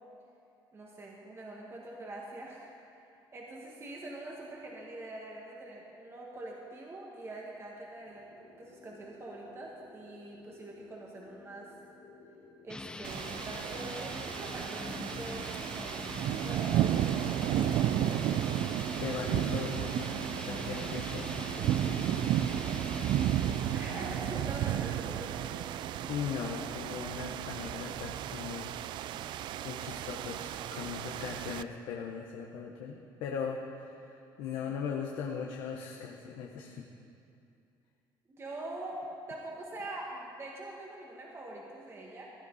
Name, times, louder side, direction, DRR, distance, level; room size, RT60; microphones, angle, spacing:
voice 1, 0.7-2.7 3.3-11.7 12.6-17.9 23.7-25.6 34.6-34.7 38.3-39.0 39.3-42.2, right 2 dB, 30° right, -2 dB, 1.9 m, -44 dB
sound 1, 8.0-26.8, left 3 dB, 65° left, 2.7 m, -53 dB
sound 2, 12.7-25.2, left 2 dB, 10° left, 0.5 m, -43 dB
sound 3, 13.0-31.6, right 11 dB, 65° right, 0.4 m, -33 dB
voice 2, 19.0-20.1 20.4-21.8 25.5-28.7 29.6-36.8, left 6 dB, 85° left, 0 dB, 1.0 m, -39 dB
16.5 x 11.5 x 4.1 m, 2.6 s
cardioid pair, 105°, 8 cm